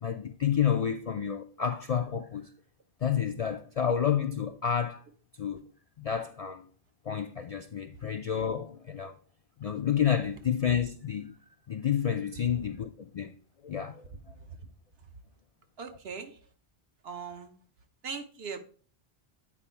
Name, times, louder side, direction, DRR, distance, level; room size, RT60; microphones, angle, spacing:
voice 1, 0.0-2.5 3.0-5.0 5.4-5.6 6.0-6.7 7.1-9.2 9.6-11.4 11.7-13.3 13.6-14.0, left 8 dB, 55° left, 0.4 m, -30 dB
voice 2, 15.8-16.3 17.0-17.5 18.0-18.6, right 6 dB, 70° right, 1.1 m, -39 dB
8.7 x 4.6 x 4.4 m
omnidirectional pair, 1.1 m